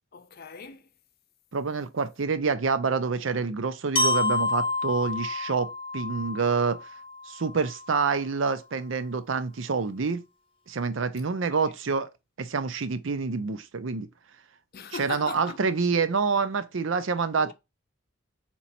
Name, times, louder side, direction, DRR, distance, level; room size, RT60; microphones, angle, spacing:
voice 1, 0.1-0.9 11.5-11.7 14.7-15.6 17.4-17.5, left 5 dB, 55° left, 0.6 m, -39 dB
voice 2, 1.5-6.8 7.3-10.2 10.7-12.1 12.4-14.1 15.0-17.5, right 5 dB, 75° right, 0.6 m, -27 dB
Glockenspiel, 4.0-7.9, left 2 dB, 30° left, 1.0 m, -29 dB
4.2 x 3.0 x 4.1 m
head